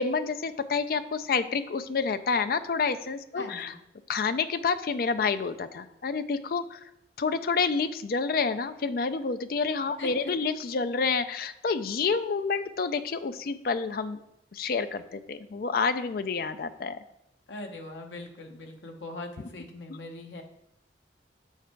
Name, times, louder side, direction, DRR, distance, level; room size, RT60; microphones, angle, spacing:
voice 1, 0.0-3.7 4.1-6.8 7.2-14.2 14.5-17.0 19.9-20.0, left 4 dB, 55° left, 12 dB, 0.4 m, -28 dB
voice 2, 3.3-3.8 10.0-10.3 17.5-20.4, left 2 dB, 85° left, 3 dB, 1.0 m, -41 dB
7.3 x 4.6 x 4.5 m, 0.85 s
head